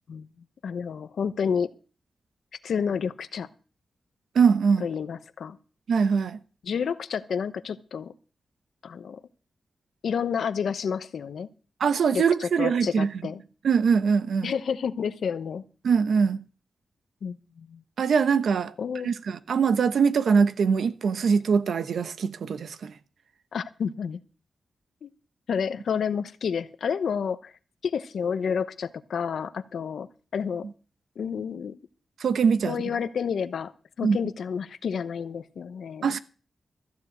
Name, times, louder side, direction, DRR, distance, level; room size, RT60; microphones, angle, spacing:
voice 1, 0.6-1.8 2.6-3.5 4.8-5.6 6.6-8.1 8.8-9.2 10.0-11.5 12.1-13.4 14.4-15.6 17.2-17.8 18.8-19.1 23.5-24.2 25.0-25.1 25.5-27.5 27.8-30.7 31.2-31.8 32.7-33.7 34.0-36.2, left 7 dB, 80° left, 0.8 m, -30 dB
voice 2, 4.3-4.9 5.9-6.4 11.8-13.1 13.6-14.5 15.8-16.4 18.0-18.7 19.0-22.9 32.2-32.8 34.0-34.2 36.0-36.2, right 6 dB, 85° right, 0.9 m, -22 dB
14.0 x 7.3 x 7.8 m
wide cardioid pair, 90°, 0 cm